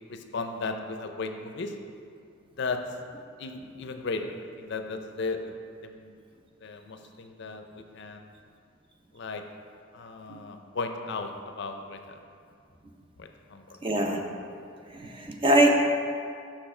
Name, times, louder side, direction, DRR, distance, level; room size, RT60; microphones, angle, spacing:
voice 1, 0.1-1.7 2.6-2.8 3.4-5.5 5.8-6.1 6.6-8.3 9.1-9.4 9.9-12.2 13.2-13.6, left 3 dB, 60° left, 6 dB, 0.5 m, -35 dB
voice 2, 13.8-14.2 14.9-15.7, right 1 dB, 25° right, 2 dB, 0.6 m, -23 dB
6.8 x 5.8 x 4.4 m, 2.3 s
head